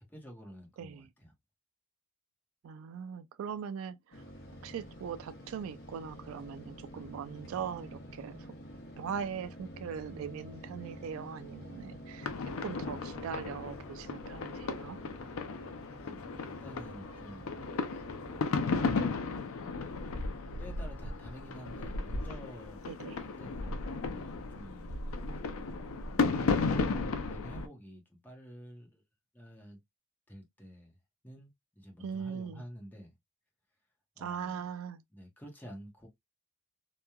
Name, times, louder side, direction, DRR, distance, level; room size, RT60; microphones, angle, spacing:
voice 1, 0.0-1.3 16.1-18.0 20.1-20.3 20.6-22.8 23.2-25.0 26.2-29.0 29.3-29.8 30.3-30.9 31.2-31.5 31.8-33.1 34.2-34.7 35.1-36.1, equal, 10° left, 0.8 m, -50 dB
voice 2, 0.8-1.1 2.6-4.2 4.6-8.5 9.0-12.3 12.6-15.0 22.9-23.2 32.0-32.6 34.2-35.0, right 7 dB, 85° right, 0.3 m, -40 dB
sound 1, 4.1-18.4, equal, 55° left, 0.9 m, -48 dB
sound 2, 12.2-27.7, left 4 dB, 90° left, 0.5 m, -35 dB
3.0 x 2.2 x 2.2 m
head